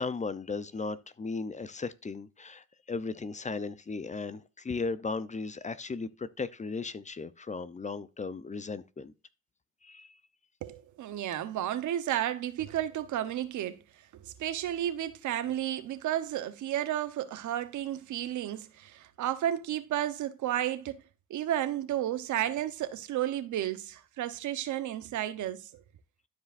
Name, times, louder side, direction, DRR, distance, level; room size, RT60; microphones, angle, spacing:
voice 1, 0.0-9.1 9.8-10.1, left 4 dB, 25° left, 0.6 m, -36 dB
voice 2, 10.6-13.8 14.1-21.0 21.3-25.8, right 12 dB, 75° right, 0.9 m, -32 dB
13.0 x 4.9 x 2.5 m
cardioid pair, 90°, 30 cm